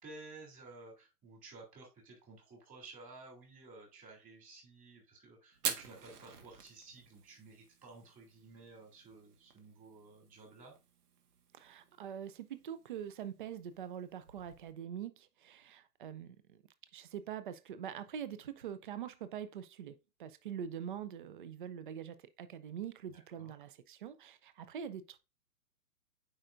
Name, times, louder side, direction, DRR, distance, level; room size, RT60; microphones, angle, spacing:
voice 1, 0.0-10.7 23.1-23.5, right 3 dB, 15° right, 3.1 m, -54 dB
Fire, 5.5-14.7, right 6 dB, 70° right, 1.7 m, -47 dB
voice 2, 11.5-16.6 16.9-25.2, right 9 dB, 35° right, 0.5 m, -44 dB
8.8 x 5.0 x 2.6 m
hypercardioid pair, 160°, 47 cm